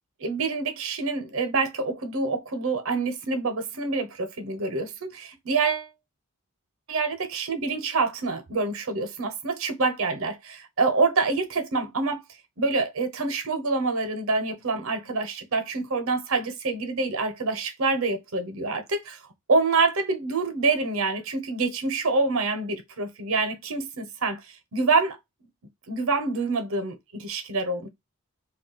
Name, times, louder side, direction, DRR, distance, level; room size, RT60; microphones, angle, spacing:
voice 1, 0.2-5.9 6.9-12.2 12.6-19.2 19.5-25.2 25.9-27.9, right 3 dB, 60° right, 0.7 m, -26 dB
2.3 x 2.3 x 3.8 m
head